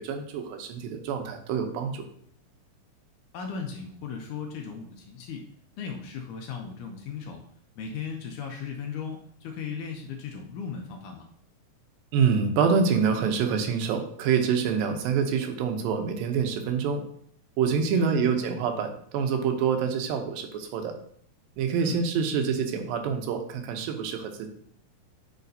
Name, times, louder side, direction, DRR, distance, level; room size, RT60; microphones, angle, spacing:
voice 1, 0.0-2.1 12.1-17.0 17.6-21.0 21.6-24.5, right 6 dB, 80° right, 6 dB, 2.5 m, -26 dB
voice 2, 3.3-5.4 5.8-7.4 7.8-11.3 17.9-18.3 21.8-22.0, left 6 dB, 80° left, 3 dB, 1.9 m, -36 dB
9.1 x 5.0 x 2.7 m, 0.63 s
omnidirectional pair, 4.1 m